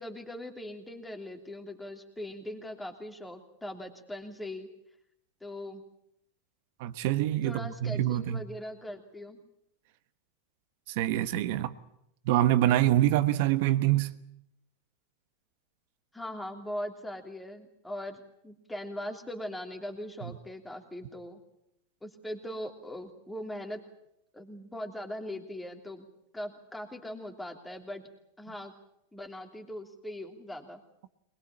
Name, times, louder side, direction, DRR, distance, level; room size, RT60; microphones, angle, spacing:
voice 1, 0.0-4.7 5.4-5.8 7.4-9.4 16.1-21.4 22.0-23.8 24.3-26.0 26.3-28.0 28.4-28.7 29.1-30.8, left 1 dB, 5° left, 3.1 m, -40 dB
voice 2, 6.8-8.5 10.9-11.7 12.2-14.1 20.2-20.3, right 13 dB, 60° right, 1.2 m, -25 dB
22.0 x 20.5 x 8.8 m
supercardioid pair, 130°, 0 cm